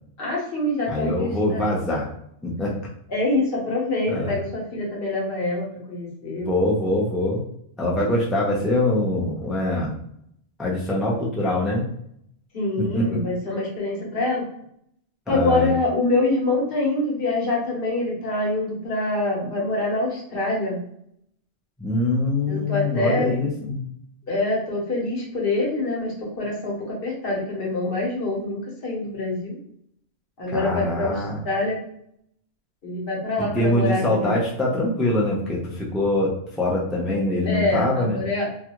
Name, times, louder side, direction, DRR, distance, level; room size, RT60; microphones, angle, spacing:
voice 1, 0.2-1.7 3.1-6.5 12.5-14.4 15.3-20.8 22.5-23.3 24.3-26.8 27.0-29.6 30.4-31.8 32.8-34.3 37.4-38.5, left 2 dB, 55° left, -3 dB, 1.1 m, -25 dB
voice 2, 0.9-2.1 2.4-2.8 4.1-4.3 6.5-7.4 7.8-9.9 10.6-11.8 12.9-13.2 15.3-15.7 21.8-23.8 30.5-31.4 33.5-36.3 36.6-38.2, left 1 dB, ahead, -4 dB, 0.3 m, -23 dB
2.4 x 2.3 x 2.9 m, 0.71 s
omnidirectional pair, 1.2 m